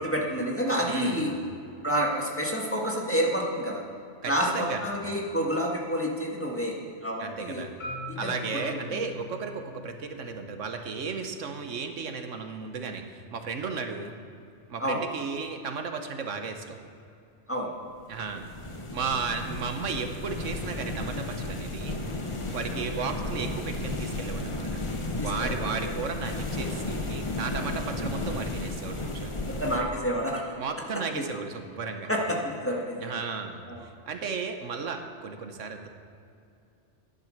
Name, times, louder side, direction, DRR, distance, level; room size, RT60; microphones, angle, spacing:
voice 1, 0.0-1.3 1.8-3.8 4.3-7.7 8.1-8.3 8.7-9.0 14.8-15.0 17.5-17.7 22.7-22.8 25.2-25.6 25.9-26.0 29.6-30.6 31.1-31.4 32.1-33.1 33.7-33.8, equal, 10° left, -2 dB, 1.8 m, -29 dB
voice 2, 0.8-1.3 4.2-4.9 7.2-7.7 8.2-14.2 14.7-16.8 18.1-18.5 18.9-22.0 22.5-24.8 25.2-29.4 30.6-32.1 33.0-35.9, right 5 dB, 80° right, 6 dB, 1.4 m, -34 dB
Marimba xylophone, 7.8-12.0, left 3 dB, 55° left, 2.8 m, -43 dB
sound 1, 18.1-29.8, left 2 dB, 25° left, 1.1 m, -33 dB
12.5 x 10.5 x 6.6 m, 2.5 s
omnidirectional pair, 1.3 m